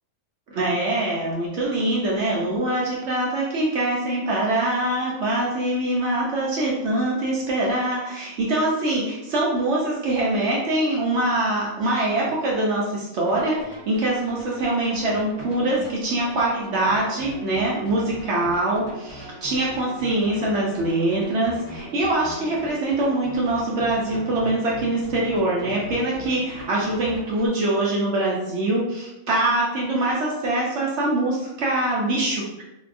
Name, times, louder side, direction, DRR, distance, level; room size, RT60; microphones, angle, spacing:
voice 1, 0.5-32.4, right 1 dB, 65° right, -4 dB, 0.7 m, -24 dB
sound 1, 13.3-27.5, equal, 10° left, 1.0 m, -40 dB
2.6 x 2.2 x 2.4 m, 0.96 s
omnidirectional pair, 1.5 m